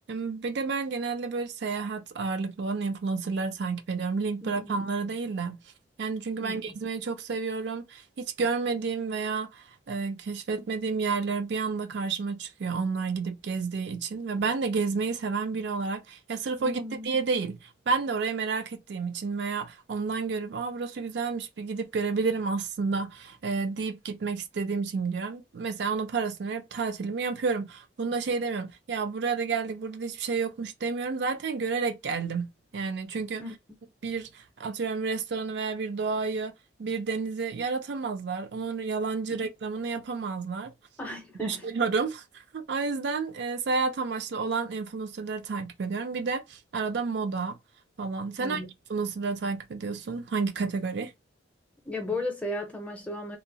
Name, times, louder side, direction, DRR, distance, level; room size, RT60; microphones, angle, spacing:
voice 1, 0.1-5.6 6.0-33.4 34.0-36.5 36.8-40.7 41.4-42.2 42.5-47.6 48.0-48.6 48.9-51.1, right 4 dB, 60° right, 0.4 m, -30 dB
voice 2, 4.4-4.8 6.4-6.8 16.6-17.1 33.4-33.5 39.3-39.4 41.0-41.6 48.4-48.7 51.8-53.4, left 2 dB, 5° left, 0.6 m, -35 dB
2.7 x 2.0 x 2.6 m
head